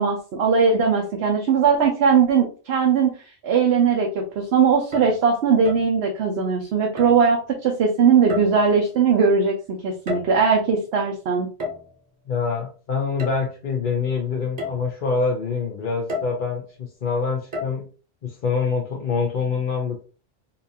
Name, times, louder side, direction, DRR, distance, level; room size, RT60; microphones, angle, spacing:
voice 1, 0.0-3.1 3.4-11.5, right 6 dB, 75° right, 0 dB, 0.9 m, -19 dB
sound 1, 4.8-5.2 5.6-5.9 7.0-7.3 8.3-8.8 9.8-10.6 11.6-12.0 13.2-13.4 13.9-14.0 14.6-14.9 16.1-16.5 17.5-17.7, left 3 dB, 40° right, 0.9 m, -32 dB
voice 2, 12.3-17.9 18.2-20.0, left 5 dB, 55° left, -1 dB, 0.8 m, -25 dB
4.0 x 2.5 x 2.7 m, 0.36 s
omnidirectional pair, 1.1 m